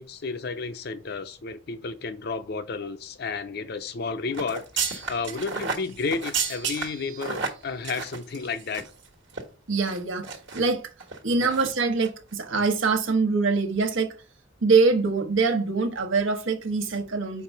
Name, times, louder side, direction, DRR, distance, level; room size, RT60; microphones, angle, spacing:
voice 1, 0.0-8.9 11.4-11.6, left 4 dB, 55° left, 0.6 m, -32 dB
sound 1, 4.3-9.0 9.3-9.4 9.9-10.6 11.0-11.2 11.5-11.7 12.0-12.1, right 5 dB, 65° right, 1.4 m, -32 dB
voice 2, 9.7-10.8 11.2-14.1 14.6-17.4, right 4 dB, 80° right, 1.1 m, -24 dB
4.6 x 4.6 x 5.3 m
head